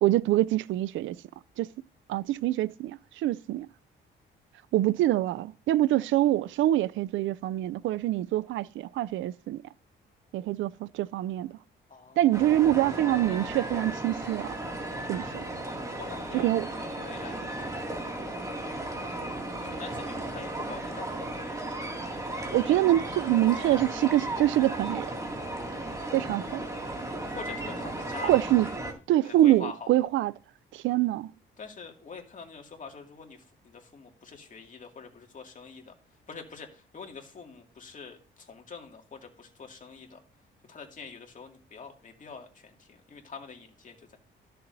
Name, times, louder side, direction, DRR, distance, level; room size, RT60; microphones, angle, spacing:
voice 1, 0.0-1.2 1.6-1.7 2.1-3.7 4.7-9.6 10.3-11.5 12.2-14.6 15.1-15.4 16.3-16.7 22.5-25.1 26.1-26.6 28.2-28.7 29.1-30.3 30.7-31.3, right 14 dB, 75° right, 0.4 m, -25 dB
voice 2, 11.9-12.6 15.9-18.2 19.4-22.1 27.2-28.4 29.2-29.9 31.6-35.9 36.3-40.2 40.7-44.2, left 5 dB, 40° left, 2.3 m, -45 dB
sound 1, 12.3-28.9, right 1 dB, 15° right, 2.4 m, -35 dB
13.5 x 6.7 x 2.7 m
cardioid pair, 90°, 20 cm